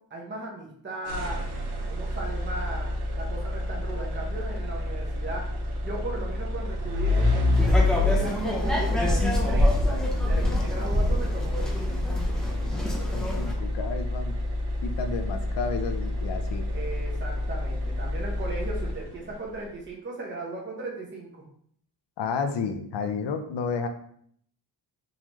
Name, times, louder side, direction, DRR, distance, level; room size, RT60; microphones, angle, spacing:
voice 1, 0.1-1.4 1.9-5.5 5.8-12.0 12.4-12.7 16.7-21.4, right 2 dB, 25° right, -3 dB, 0.8 m, -37 dB
sound 1, 1.1-19.3, left 2 dB, 65° right, 0.8 m, -28 dB
sound 2, 7.5-13.5, equal, ahead, 0.6 m, -26 dB
voice 2, 13.1-14.4 14.8-16.7 22.2-23.9, left 5 dB, 85° left, 7 dB, 0.6 m, -31 dB
3.8 x 3.0 x 3.0 m, 0.64 s
wide cardioid pair, 155°, 42 cm